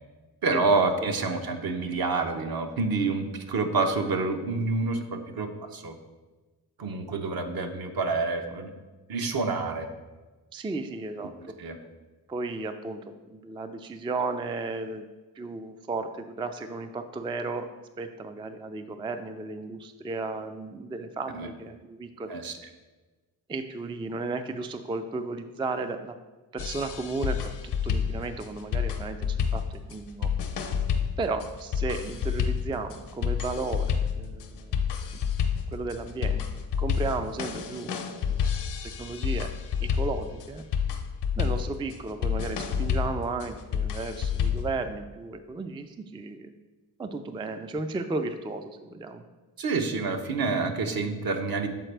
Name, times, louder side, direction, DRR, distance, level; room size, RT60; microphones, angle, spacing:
voice 1, 0.4-5.9 6.8-8.7 9.1-9.9 11.2-11.3 11.6-11.8 21.3-21.5 22.3-22.5 49.6-51.7, right 3 dB, 55° right, 5 dB, 0.8 m, -28 dB
voice 2, 10.5-11.6 12.3-15.1 15.4-17.7 18.0-22.3 23.5-26.2 26.5-30.3 31.2-34.9 35.1-35.2 35.7-38.0 38.3-38.5 39.0-39.5 39.8-40.6 41.4-46.5 47.0-49.2, right 3 dB, 15° right, 8 dB, 0.3 m, -34 dB
sound 1, 26.6-44.7, left 7 dB, 70° left, 0.7 m, -29 dB
7.6 x 4.2 x 3.3 m, 1.2 s
supercardioid pair, 55°, 42 cm